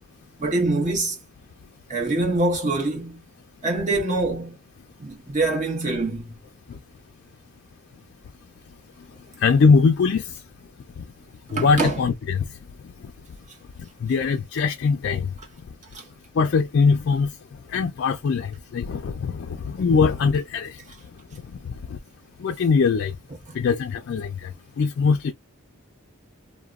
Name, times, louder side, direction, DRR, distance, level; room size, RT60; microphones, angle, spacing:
voice 1, 0.4-1.2 1.9-3.2 3.6-4.6 5.0-6.3 11.5-12.0 15.9-16.1, right 2 dB, 35° right, 1.1 m, -24 dB
voice 2, 9.4-10.2 11.5-12.4 14.0-15.3 16.4-17.3 17.7-20.8 21.9-22.0 22.4-23.1 23.5-24.5 24.8-25.3, left 5 dB, 55° left, 0.3 m, -21 dB
2.9 x 2.1 x 2.3 m
head